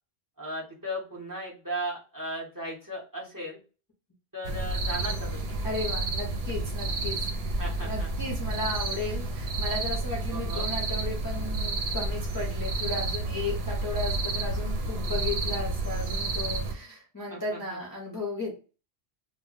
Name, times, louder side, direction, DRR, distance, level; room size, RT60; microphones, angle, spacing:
voice 1, 0.4-3.6 4.3-5.6 7.6-8.1 10.3-10.7 17.3-17.8, equal, 20° right, -3 dB, 0.8 m, -36 dB
sound 1, 4.4-16.7, right 2 dB, 75° right, 0.8 m, -30 dB
voice 2, 5.6-7.3 7.8-18.5, left 2 dB, 25° left, -4 dB, 0.6 m, -35 dB
2.2 x 2.1 x 3.8 m, 0.35 s
omnidirectional pair, 1.1 m